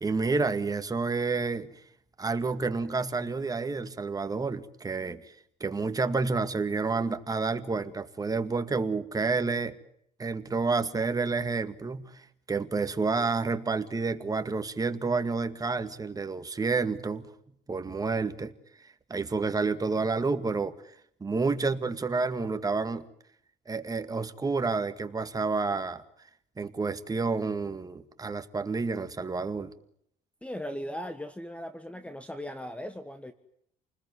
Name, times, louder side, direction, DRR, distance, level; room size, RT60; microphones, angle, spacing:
voice 1, 0.0-1.7 2.2-5.3 5.6-9.8 10.2-17.3 17.7-18.5 19.1-20.7 21.2-23.0 23.7-26.0 26.6-29.7, right 4 dB, 20° right, 9 dB, 2.0 m, -29 dB
voice 2, 30.4-33.3, equal, 5° left, 10 dB, 1.5 m, -38 dB
29.0 x 20.5 x 9.6 m, 0.72 s
cardioid pair, 110°, 17 cm